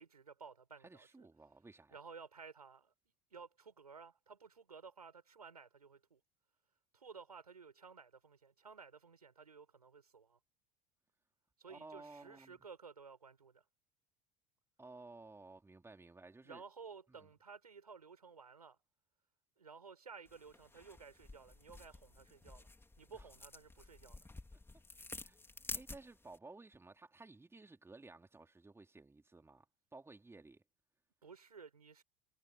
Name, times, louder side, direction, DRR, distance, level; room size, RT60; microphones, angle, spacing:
voice 1, 0.0-1.3 1.9-2.9 3.3-6.2 6.9-10.4 11.6-13.6 16.4-18.8 19.6-22.7 23.0-24.2 31.2-32.0, right 5 dB, 90° right, 6.6 m, -55 dB
voice 2, 0.8-2.0 11.7-12.7 14.8-16.6 17.1-17.3 23.1-23.3 24.5-24.6 25.2-25.4 25.7-29.7 29.9-30.6, right 3 dB, 15° right, 4.0 m, -56 dB
sound 1, 20.3-26.4, left 2 dB, 10° left, 4.0 m, -51 dB
hypercardioid pair, 70°, 19 cm